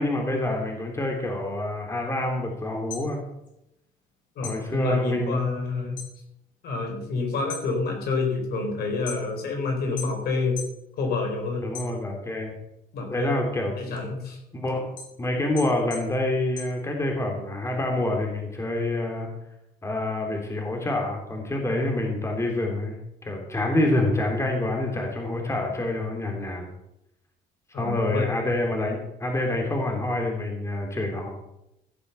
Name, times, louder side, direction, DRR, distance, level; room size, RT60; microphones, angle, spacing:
voice 1, 0.0-3.2 4.4-5.4 11.6-12.5 13.1-14.0 14.5-14.9 15.2-19.3 19.8-26.7 27.7-31.3, left 1 dB, 15° left, 2 dB, 3.2 m, -27 dB
sound 1, 2.7-4.1 4.4-6.2 6.5-7.0 7.3-9.5 10.0-10.8 11.2-12.4 12.8-17.4, left 5 dB, 50° left, 4.6 m, -41 dB
voice 2, 4.4-6.0 6.6-10.6 11.0-11.7 12.9-13.4 13.8-14.4 27.7-28.3, left 3 dB, 70° left, 2 dB, 4.4 m, -28 dB
15.5 x 6.8 x 6.9 m, 0.83 s
cardioid pair, 110°, 17 cm